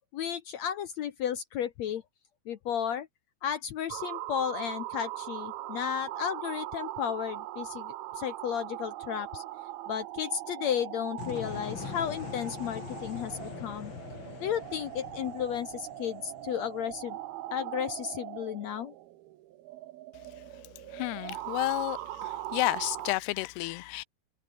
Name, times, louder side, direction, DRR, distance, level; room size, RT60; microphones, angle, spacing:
voice 1, 0.1-2.0 2.5-3.1 3.4-9.4 9.9-13.9 14.4-17.2 17.5-18.9, left 9 dB, 75° left, 1.6 m, -33 dB
sound 1, 3.9-23.2, right 15 dB, 75° right, 2.9 m, -40 dB
sound 2, 11.2-17.0, left 7 dB, 50° left, 1.5 m, -43 dB
voice 2, 20.9-24.0, left 19 dB, 90° left, 2.8 m, -31 dB
omnidirectional pair, 4.6 m